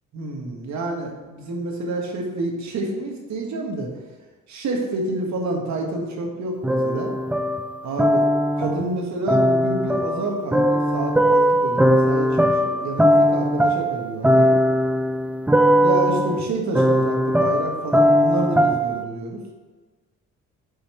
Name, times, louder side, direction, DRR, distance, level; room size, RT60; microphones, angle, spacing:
voice 1, 0.1-3.9 4.5-7.1 7.8-8.3 8.6-14.6 15.8-19.4, right 2 dB, 65° right, 1 dB, 1.6 m, -28 dB
sound 1, 6.6-8.9 9.3-19.0, equal, 5° right, 0.4 m, -19 dB
5.6 x 4.4 x 5.5 m, 1.3 s
cardioid pair, 90°, 30 cm